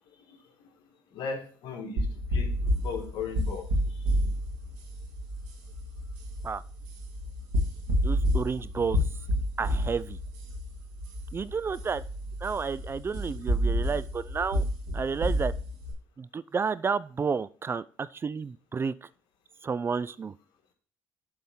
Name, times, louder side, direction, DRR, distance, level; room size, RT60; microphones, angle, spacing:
voice 1, 1.1-4.1, left 4 dB, 70° left, 4 dB, 1.6 m, -37 dB
sound 1, 2.0-15.9, equal, 90° right, 2.0 m, -30 dB
voice 2, 8.0-9.0 9.6-10.2 11.3-12.0 12.4-14.6 14.9-15.5 16.2-18.9 19.6-20.3, right 5 dB, 30° right, 17 dB, 0.3 m, -31 dB
7.7 x 3.6 x 5.8 m, 0.43 s
supercardioid pair, 70°, 8 cm